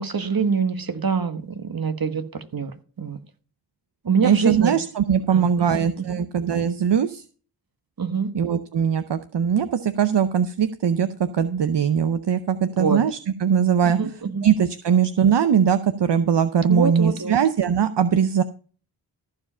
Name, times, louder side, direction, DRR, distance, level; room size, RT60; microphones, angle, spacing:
voice 1, 0.0-3.2 4.0-4.7 5.3-6.2 8.0-8.3 12.8-13.0 13.8-14.5 16.7-17.4, right 5 dB, 55° right, 1.4 m, -25 dB
voice 2, 4.2-7.2 8.3-14.0 14.4-18.4, right 7 dB, 70° right, 0.7 m, -21 dB
14.5 x 5.0 x 5.5 m
cardioid pair, 50°, 44 cm